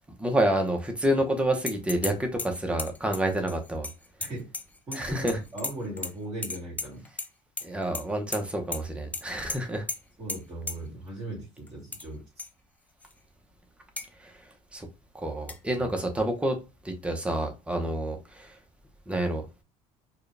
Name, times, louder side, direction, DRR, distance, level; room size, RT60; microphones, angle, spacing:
voice 1, 0.2-3.9 4.9-5.4 7.6-9.8 14.2-14.3 14.7-14.9 15.2-16.6 16.8-18.5 19.1-19.4, right 1 dB, 10° right, 0.9 m, -28 dB
sound 1, 1.7-2.1 2.4-5.0 5.3-6.1 6.4-7.3 7.6-8.0 8.3-8.4 8.7-8.8 9.1-9.2 9.5-9.6 9.9-10.0 10.3-10.4 10.7-10.8 11.7-12.0 12.4-12.5 13.0-13.1 14.0-14.1 15.5-15.6, left 3 dB, 10° left, 0.4 m, -34 dB
voice 2, 4.9-7.1 10.2-12.4 15.7-15.9, right 1 dB, 35° right, 2.2 m, -38 dB
4.5 x 2.4 x 3.3 m
cardioid pair, 130°, 13 cm